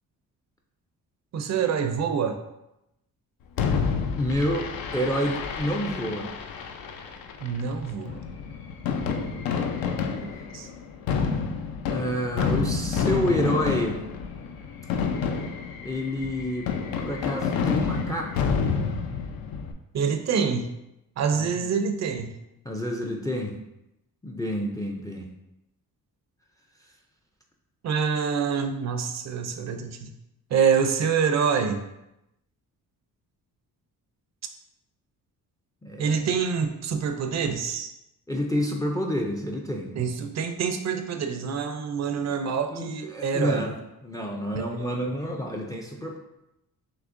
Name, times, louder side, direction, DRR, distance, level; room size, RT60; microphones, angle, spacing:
voice 1, 1.3-2.4 7.4-8.2 9.9-10.7 19.9-20.7 21.2-22.3 27.8-30.1 30.5-31.8 36.0-37.9 40.0-43.6 44.5-44.6, right 6 dB, 50° right, 6 dB, 0.5 m, -26 dB
Fireworks, 3.6-19.7, left 5 dB, 80° left, 0.5 m, -29 dB
voice 2, 4.2-6.3 9.2-9.8 11.1-11.3 11.9-14.0 15.8-16.7 17.0-18.5 21.3-21.6 22.7-23.6 24.2-25.3 35.8-36.3 38.3-39.9 42.7-43.7 44.0-46.2, equal, 10° left, 1 dB, 0.3 m, -29 dB
6.0 x 3.0 x 2.5 m, 0.89 s
wide cardioid pair, 150°, 35 cm